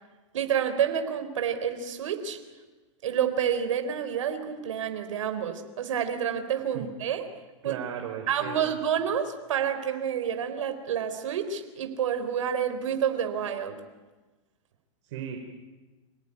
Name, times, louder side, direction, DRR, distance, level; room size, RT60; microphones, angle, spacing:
voice 1, 0.3-2.4 3.0-7.3 7.6-7.8 8.3-13.8, right 8 dB, 80° right, 8 dB, 3.7 m, -29 dB
voice 2, 7.6-8.7 15.0-15.4, right 9 dB, 60° right, 4 dB, 4.0 m, -36 dB
28.0 x 18.0 x 9.9 m, 1.2 s
hypercardioid pair, 135°, 16 cm